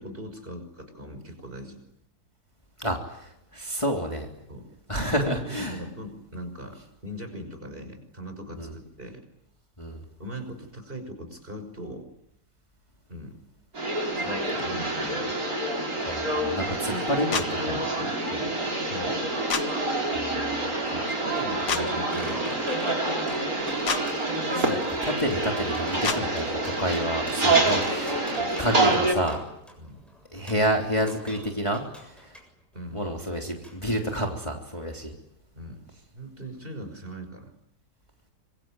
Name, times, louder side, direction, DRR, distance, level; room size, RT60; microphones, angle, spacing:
voice 1, 0.0-1.8 4.5-4.7 5.1-9.2 10.2-12.1 13.1-13.4 14.2-15.4 16.7-18.6 18.9-19.2 20.8-22.7 28.4-28.6 29.8-30.0 32.7-33.0 35.6-35.8 36.1-37.5, equal, 30° right, 7 dB, 6.0 m, -40 dB
voice 2, 2.8-4.3 4.9-5.8 8.6-8.7 9.8-10.0 16.1-17.8 20.1-20.6 24.5-28.2 28.6-29.4 30.3-32.3 32.9-35.1, equal, 15° left, 1 dB, 3.4 m, -29 dB
sound 1, 13.7-29.1, right 2 dB, 55° right, 6.1 m, -27 dB
sound 2, 17.3-17.5 19.5-19.7 21.7-21.8 23.9-24.0 26.0-26.2, left 6 dB, 75° left, 2.1 m, -26 dB
sound 3, 20.0-32.5 33.6-33.8 34.1-34.2, equal, ahead, 7.3 m, -45 dB
26.5 x 23.0 x 9.2 m, 0.79 s
omnidirectional pair, 1.8 m